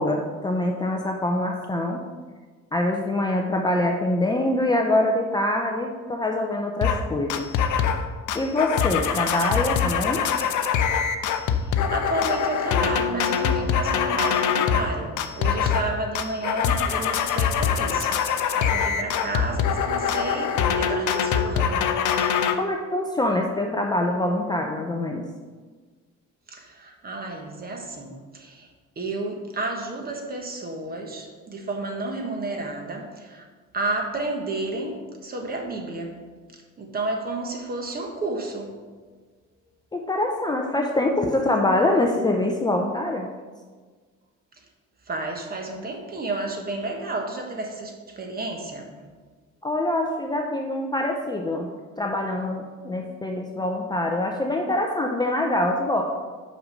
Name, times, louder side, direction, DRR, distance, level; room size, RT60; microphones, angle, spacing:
voice 1, 0.0-2.0 2.7-7.5 8.3-10.2 22.6-25.2 39.9-43.3 49.6-51.7 52.0-56.0, left 1 dB, 15° left, 1 dB, 0.5 m, -24 dB
sound 1, 6.8-7.0 7.3-8.0 8.3-14.9 15.2-15.9 16.1-22.5, left 7 dB, 75° left, 0.7 m, -23 dB
voice 2, 11.4-18.1 18.5-21.8 26.5-28.7 29.0-33.4 33.7-36.1 36.8-38.7 45.1-49.0, right 2 dB, 30° right, 3 dB, 1.2 m, -31 dB
6.0 x 5.4 x 6.4 m, 1.5 s
cardioid pair, 155°, 30 cm